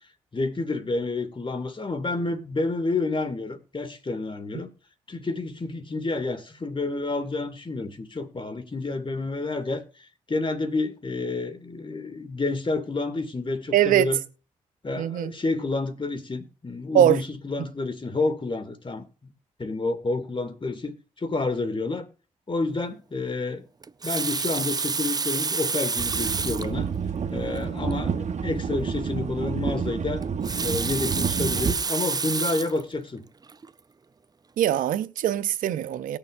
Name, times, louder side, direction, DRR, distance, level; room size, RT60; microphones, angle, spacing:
voice 1, 0.3-4.7 5.1-9.8 10.3-14.2 14.8-19.3 19.6-22.1 22.5-23.7 24.0-26.9 27.3-30.2 30.6-33.2, left 3 dB, 40° left, 2.2 m, -29 dB
voice 2, 13.7-14.1 15.0-15.3 16.9-17.2 34.6-36.2, right 11 dB, 90° right, 0.6 m, -22 dB
Water tap faucet, 23.8-26.7 27.5-27.6 27.9-28.0 30.2-32.8 33.5-33.7, right 4 dB, 30° right, 0.4 m, -28 dB
sound 1, 26.0-31.7, right 6 dB, 60° right, 1.1 m, -29 dB
19.0 x 6.8 x 2.6 m
supercardioid pair, 45°, 14 cm